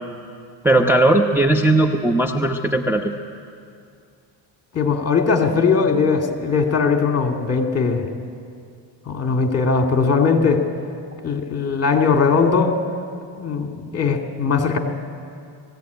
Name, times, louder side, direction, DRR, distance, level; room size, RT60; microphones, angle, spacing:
voice 1, 0.6-3.2, right 2 dB, 5° right, 0 dB, 1.0 m, -17 dB
voice 2, 4.7-8.1 9.1-10.7 11.2-12.8 13.4-14.8, left 5 dB, 35° left, 3 dB, 2.6 m, -19 dB
20.5 x 15.5 x 9.5 m, 2.3 s
cardioid pair, 95°, 44 cm